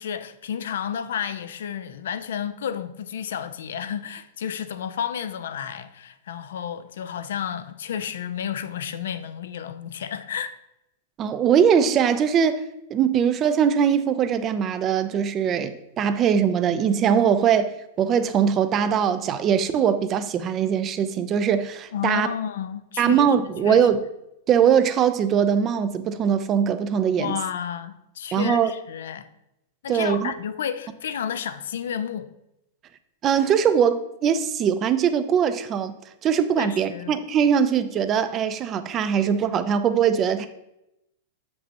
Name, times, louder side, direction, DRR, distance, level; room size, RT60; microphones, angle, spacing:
voice 1, 0.0-10.6 21.9-23.9 27.2-29.3 29.8-32.3 36.6-37.1, left 8 dB, 80° left, 0.4 m, -31 dB
voice 2, 11.2-12.7 12.9-22.3 23.0-24.0 24.5-27.4 28.3-28.7 29.9-30.3 33.2-35.9 36.2-40.5, right 8 dB, 30° right, 0.4 m, -21 dB
6.7 x 5.3 x 2.9 m
hypercardioid pair, 130°, 0 cm